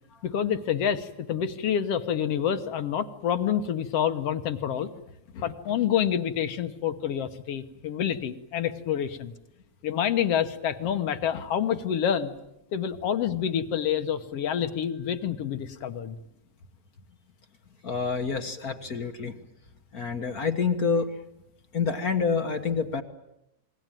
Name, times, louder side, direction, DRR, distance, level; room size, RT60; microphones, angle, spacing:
voice 1, 0.2-4.9 5.3-9.3 9.8-12.3 12.7-16.2, left 9 dB, 60° left, 10 dB, 2.0 m, -27 dB
voice 2, 17.8-19.3 19.9-21.1 21.7-23.0, left 5 dB, 45° left, 8 dB, 1.3 m, -27 dB
28.0 x 21.0 x 9.0 m, 0.86 s
omnidirectional pair, 3.3 m